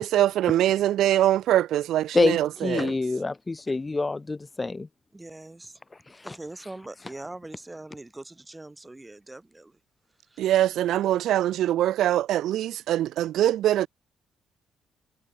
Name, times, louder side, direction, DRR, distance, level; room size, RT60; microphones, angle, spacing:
voice 1, 0.0-2.9 10.4-13.9, right 13 dB, 80° right, 0.6 m, -23 dB
voice 2, 2.1-4.9 6.1-6.4, left 3 dB, 20° left, 0.6 m, -26 dB
voice 3, 5.1-5.8 6.2-9.8 10.2-10.5, right 2 dB, 15° right, 4.5 m, -42 dB
cardioid pair, 90°, 0 cm